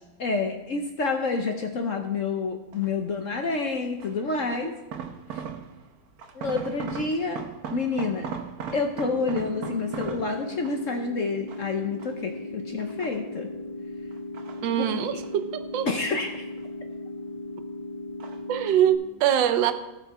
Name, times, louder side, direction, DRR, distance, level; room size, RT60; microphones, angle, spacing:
voice 1, 0.2-4.8 6.3-7.4 7.7-8.3 8.7-13.5 14.8-14.9 15.8-16.4, left 4 dB, 55° left, 4 dB, 0.9 m, -28 dB
sound 1, 2.7-3.1 4.0-5.9 6.2-11.0 11.5-12.4 12.8-13.6 14.1-15.5 15.7-16.9 17.2-17.8 18.2-18.6 18.9-19.0, right 7 dB, 60° right, 1.3 m, -39 dB
sound 2, 8.9-18.9, left 1 dB, 75° left, 3.2 m, -37 dB
voice 2, 14.6-15.9 18.5-19.7, right 10 dB, 75° right, 10 dB, 1.4 m, -23 dB
16.5 x 6.0 x 4.2 m, 1.1 s
omnidirectional pair, 2.1 m